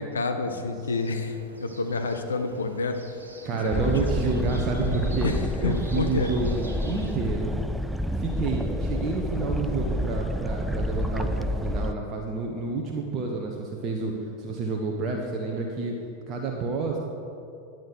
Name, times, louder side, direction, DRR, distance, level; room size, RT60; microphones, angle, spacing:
voice 1, 0.0-3.0 3.6-3.9 5.2-6.3, left 3 dB, 70° left, 6 dB, 0.6 m, -29 dB
sound 1, 1.0-7.2, right 1 dB, 80° right, 1.4 m, -47 dB
Bowed string instrument, 3.3-9.3, left 3 dB, 50° left, 1.5 m, -49 dB
voice 2, 3.4-5.3 5.6-7.5 8.1-15.9 16.3-17.0, right 3 dB, 30° right, 0 dB, 1.0 m, -29 dB
sound 2, 3.7-11.9, equal, 5° right, 0.4 m, -29 dB
10.5 x 9.1 x 4.7 m, 2.6 s
figure-of-eight pair, 90°, 0 cm